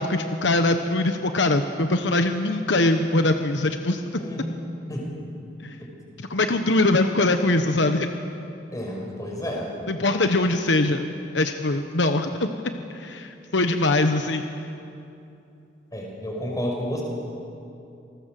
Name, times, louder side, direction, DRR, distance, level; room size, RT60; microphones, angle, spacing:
voice 1, 0.0-4.0 5.6-5.7 6.2-8.1 9.9-11.1 11.3-14.4, left 2 dB, 70° left, 6 dB, 1.1 m, -22 dB
voice 2, 4.2-4.6 4.9-5.1 8.7-9.6 15.9-17.0, equal, 20° left, -1 dB, 5.5 m, -30 dB
27.5 x 19.5 x 7.7 m, 2.7 s
head